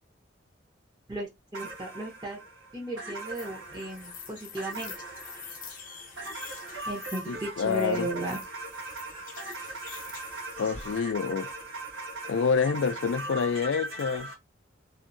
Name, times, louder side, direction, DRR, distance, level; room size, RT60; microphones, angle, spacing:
voice 1, 1.1-2.4 2.7-4.9 6.9-8.4, right 1 dB, 20° right, 0.9 m, -35 dB
sound 1, 1.5-14.3, right 2 dB, 85° right, 1.2 m, -40 dB
sound 2, 3.3-11.0, left 7 dB, 45° left, 0.7 m, -47 dB
voice 2, 7.3-8.1 10.6-11.5 12.3-14.3, left 5 dB, 70° left, 0.4 m, -27 dB
2.7 x 2.6 x 2.5 m
head